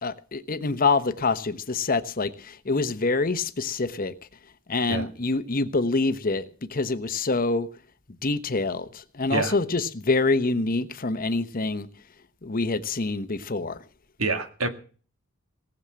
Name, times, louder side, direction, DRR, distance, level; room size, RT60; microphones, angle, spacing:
voice 1, 0.0-4.1 4.7-6.4 6.7-7.7 8.2-11.9 12.4-13.8, left 3 dB, 40° left, 0.9 m, -26 dB
voice 2, 14.2-14.7, right 3 dB, 75° right, 1.9 m, -26 dB
18.5 x 7.2 x 7.5 m
head